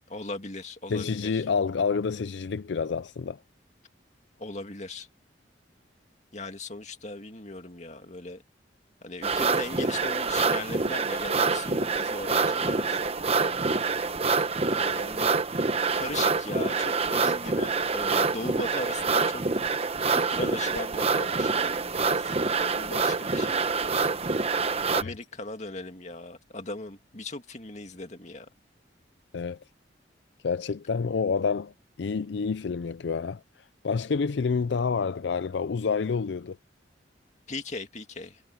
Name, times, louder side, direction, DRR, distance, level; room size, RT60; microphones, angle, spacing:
voice 1, 0.1-1.4 4.4-5.1 6.3-8.4 9.0-13.8 14.7-15.4 15.9-19.4 20.1-24.2 24.9-28.5 37.5-38.4, left 2 dB, 40° left, 2.2 m, -38 dB
voice 2, 0.9-3.4 25.0-25.1 29.3-29.6 30.4-31.7 32.0-33.4 33.8-36.6, left 5 dB, 70° left, 0.4 m, -28 dB
sound 1, 9.2-25.0, right 4 dB, 35° right, 0.9 m, -26 dB
head